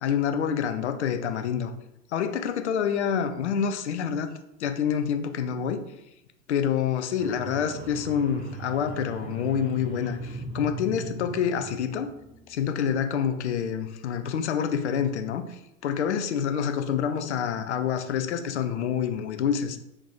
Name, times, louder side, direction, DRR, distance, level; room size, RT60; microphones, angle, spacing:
voice 1, 0.0-1.7 2.1-4.3 4.6-5.8 6.5-12.1 12.5-19.8, left 8 dB, 55° left, 8 dB, 0.5 m, -27 dB
sound 1, 7.2-12.5, right 2 dB, 20° right, 0.7 m, -39 dB
3.4 x 2.7 x 3.8 m, 0.85 s
figure-of-eight pair, 95°, 41 cm